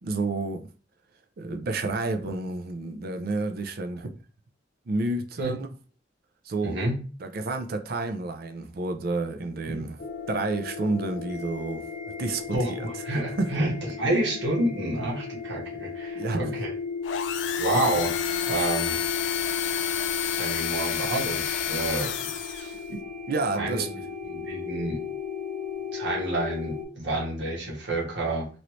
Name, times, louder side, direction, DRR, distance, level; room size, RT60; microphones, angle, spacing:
voice 1, 0.0-0.7 1.4-4.2 4.9-5.7 6.5-6.8 7.2-10.0 10.3-11.8 12.2-12.9 13.4-13.5 16.2-16.6 22.9-23.0 23.3-23.9, right 3 dB, 55° right, 0.5 m, -30 dB
voice 2, 6.6-7.0 9.7-9.8 12.5-13.7 14.0-16.7 17.6-18.2 18.5-19.0 20.3-22.7 23.5-25.0 25.9-28.5, right 1 dB, 85° right, 1.3 m, -29 dB
sound 1, 10.0-26.8, left 5 dB, 45° left, 0.7 m, -35 dB
sound 2, 17.0-22.8, left 9 dB, 85° left, 0.3 m, -30 dB
3.1 x 2.6 x 3.0 m
head